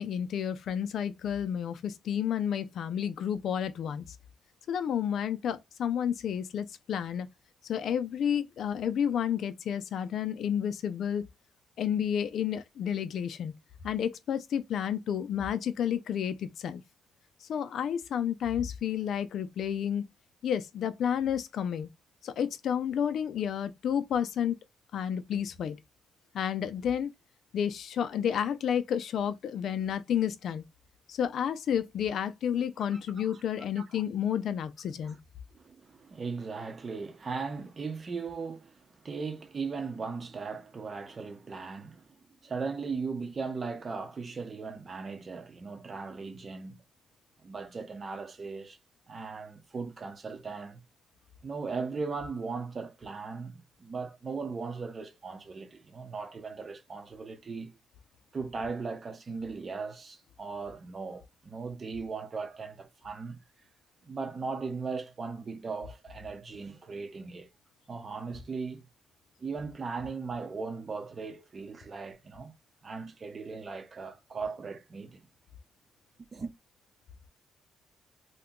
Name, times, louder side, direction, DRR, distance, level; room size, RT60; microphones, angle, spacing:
voice 1, 0.0-4.0 4.7-7.3 7.7-11.3 11.8-13.5 13.8-16.8 17.5-20.1 20.4-21.9 22.2-24.6 24.9-25.8 26.3-27.1 27.5-30.6 31.1-35.2, left 9 dB, 65° left, 0.4 m, -31 dB
voice 2, 32.8-33.4 33.8-34.0 35.0-35.2 35.5-42.2 42.4-46.8 47.4-48.8 49.1-50.8 51.4-57.7 58.3-63.4 64.0-67.5 67.9-68.9 69.4-72.5 72.8-75.3 76.3-76.5, right 4 dB, 40° right, 0.7 m, -38 dB
2.8 x 2.2 x 3.6 m
cardioid pair, 90°, 0 cm